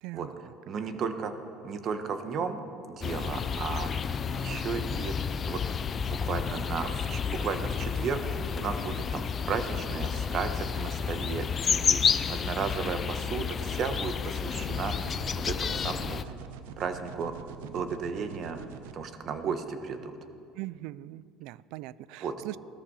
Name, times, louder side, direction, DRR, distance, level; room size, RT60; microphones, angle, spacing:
voice 1, 0.0-0.5 4.5-4.6 20.6-22.6, right 17 dB, 70° right, 20 dB, 0.4 m, -41 dB
voice 2, 0.7-1.3 1.6-2.6 2.9-5.1 5.4-5.6 5.9-15.2 15.4-16.2 16.8-17.3 17.6-18.6 18.9-20.1 22.2-22.4, right 5 dB, 45° right, 8 dB, 1.4 m, -34 dB
sound 1, 3.0-16.2, left 7 dB, 35° left, 0.6 m, -31 dB
sound 2, 14.5-18.9, right 8 dB, 90° right, 0.8 m, -45 dB
17.0 x 13.5 x 5.6 m, 2.4 s
supercardioid pair, 110°, 0 cm